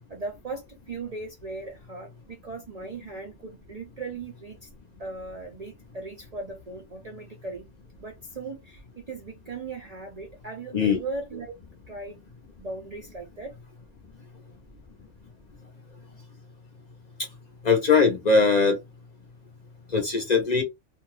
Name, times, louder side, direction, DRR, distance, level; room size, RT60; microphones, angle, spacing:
voice 1, 0.0-4.7 5.0-7.7 8.0-11.5 11.9-12.2 12.6-13.5, right 3 dB, 45° right, 0.5 m, -38 dB
voice 2, 17.6-18.8 19.9-20.6, left 4 dB, 45° left, 0.7 m, -20 dB
2.5 x 2.3 x 3.1 m
omnidirectional pair, 1.2 m